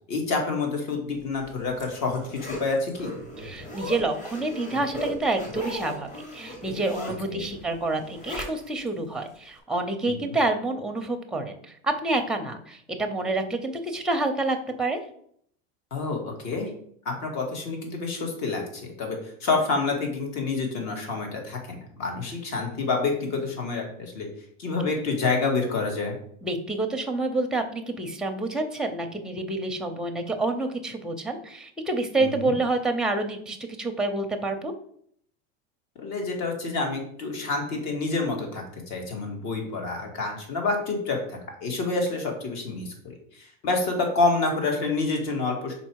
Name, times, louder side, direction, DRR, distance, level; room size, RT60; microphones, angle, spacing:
voice 1, 0.1-3.1 7.3-7.4 10.1-10.4 15.9-16.7 17.1-24.3 24.6-26.2 32.2-32.5 36.0-45.7, left 3 dB, 55° left, 2 dB, 2.0 m, -28 dB
Zipper (clothing), 1.3-8.9 9.3-9.4, left 1 dB, 25° left, 1.5 m, -38 dB
voice 2, 3.4-15.0 26.4-34.7, right 2 dB, ahead, 4 dB, 0.6 m, -28 dB
5.3 x 4.4 x 4.6 m, 0.64 s
supercardioid pair, 140°, 33 cm